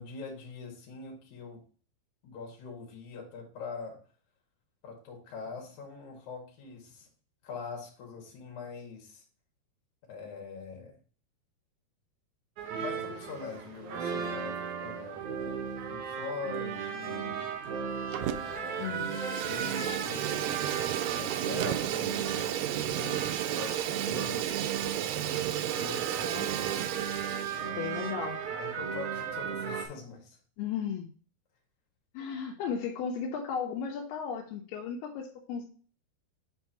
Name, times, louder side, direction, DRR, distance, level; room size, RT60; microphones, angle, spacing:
voice 1, 0.0-1.6 2.2-4.0 4.8-7.1 7.4-9.2 10.1-10.9 12.8-15.2 15.9-17.6 18.1-19.0 19.5-24.5 25.5-26.3 27.5-27.8 28.6-30.4, left 5 dB, 55° left, 0 dB, 3.1 m, -43 dB
sound 1, 12.6-29.9, right 7 dB, 70° right, 2.0 m, -36 dB
Fire, 18.1-18.6 18.9-27.7, right 11 dB, 90° right, 1.9 m, -33 dB
voice 2, 18.8-19.2 26.2-26.5 27.7-28.4 30.6-31.1 32.1-35.7, left 7 dB, 85° left, 2 dB, 2.8 m, -35 dB
9.0 x 4.6 x 2.9 m, 0.41 s
omnidirectional pair, 4.6 m